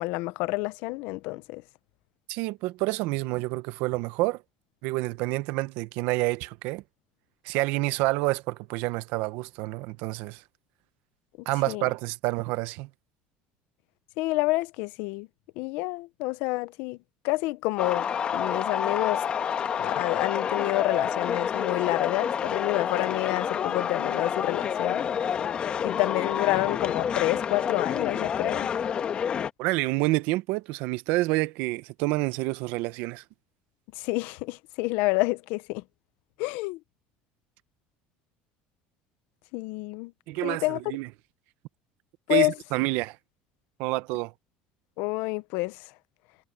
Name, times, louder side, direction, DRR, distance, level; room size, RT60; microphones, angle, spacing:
voice 1, 0.0-1.6 11.7-11.8 14.2-15.3 15.6-17.0 17.2-19.2 19.8-25.0 25.8-28.7 34.0-35.8 36.4-36.8 39.5-40.1 40.4-40.8 42.3-42.5 45.0-45.9, left 22 dB, 75° left, 0.7 m, -28 dB
voice 2, 2.3-4.4 4.8-6.8 7.4-10.4 11.5-12.9 29.6-33.2 40.3-41.1 42.3-43.2 43.8-44.3, right 20 dB, 75° right, 0.9 m, -28 dB
sound 1, 17.8-29.5, left 8 dB, 35° left, 1.5 m, -28 dB
cardioid pair, 140°, 3 cm